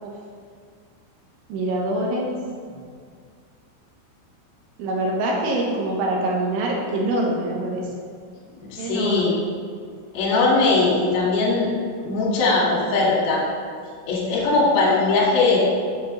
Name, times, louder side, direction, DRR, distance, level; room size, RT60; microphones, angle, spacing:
voice 1, 1.5-2.3 4.8-8.1 8.8-9.3, right 1 dB, 75° right, -2 dB, 3.6 m, -24 dB
voice 2, 8.6-9.4 10.1-11.7 12.0-13.4 14.0-15.6, left 3 dB, 55° left, -5 dB, 3.7 m, -20 dB
8.0 x 5.2 x 6.6 m, 2.1 s
omnidirectional pair, 5.8 m